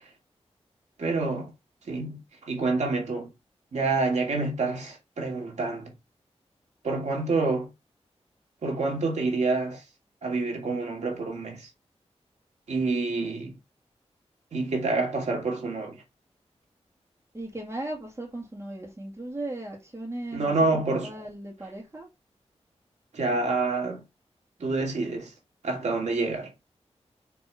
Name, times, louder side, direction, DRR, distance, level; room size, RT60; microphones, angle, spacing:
voice 1, 1.0-1.5 1.9-3.3 3.7-5.9 6.8-7.7 8.6-9.8 10.2-11.7 12.7-13.6 14.5-16.0 20.3-21.1 23.1-24.0 24.6-25.3 25.6-26.5, right 3 dB, 90° right, 2.6 m, -27 dB
voice 2, 17.3-22.1, right 1 dB, 25° right, 2.1 m, -37 dB
6.9 x 3.6 x 4.9 m
wide cardioid pair, 120°, 11 cm